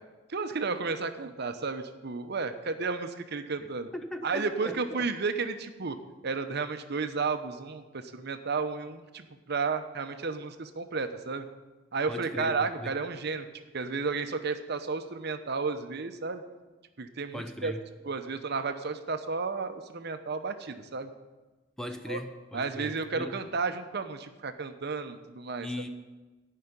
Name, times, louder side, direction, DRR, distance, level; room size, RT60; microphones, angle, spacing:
voice 1, 0.3-3.9 4.2-6.0 6.2-11.5 11.9-13.5 13.7-16.4 17.0-17.7 18.1-21.1 22.1-22.2 22.5-25.7, right 4 dB, 55° right, 8 dB, 0.8 m, -32 dB
voice 2, 3.9-5.1 12.1-12.9 17.3-17.9 21.8-23.4 25.6-25.9, equal, 5° left, 7 dB, 0.6 m, -39 dB
13.5 x 5.7 x 9.6 m, 1.2 s
head